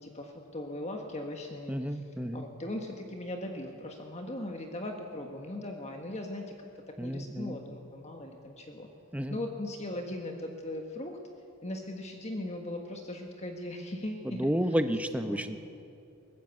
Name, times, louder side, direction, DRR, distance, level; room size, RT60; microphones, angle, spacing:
voice 1, 0.0-2.0 2.3-6.5 7.0-8.9 9.3-11.2 11.6-14.5 15.3-15.4, left 1 dB, 30° left, 3 dB, 1.5 m, -39 dB
voice 2, 1.7-2.5 7.0-7.6 9.1-9.4 14.2-15.6, equal, 5° right, 8 dB, 0.8 m, -31 dB
22.0 x 19.0 x 8.2 m, 2.5 s
head